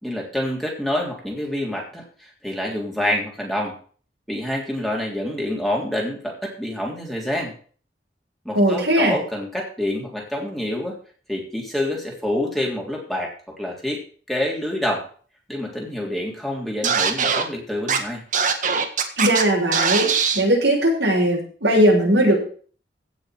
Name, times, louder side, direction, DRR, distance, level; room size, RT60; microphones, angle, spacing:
voice 1, 0.0-3.7 4.3-7.5 8.5-11.0 11.3-14.0 14.3-15.0 15.5-18.2, left 1 dB, ahead, -2 dB, 3.4 m, -27 dB
voice 2, 8.5-9.1 19.2-20.1 20.3-22.4, right 1 dB, 90° right, -2 dB, 6.8 m, -18 dB
Scratching (performance technique), 16.8-17.4 17.9-18.0 18.3-19.4 19.7-20.4, right 6 dB, 45° right, 1.6 m, -21 dB
16.0 x 6.3 x 6.5 m, 0.43 s
head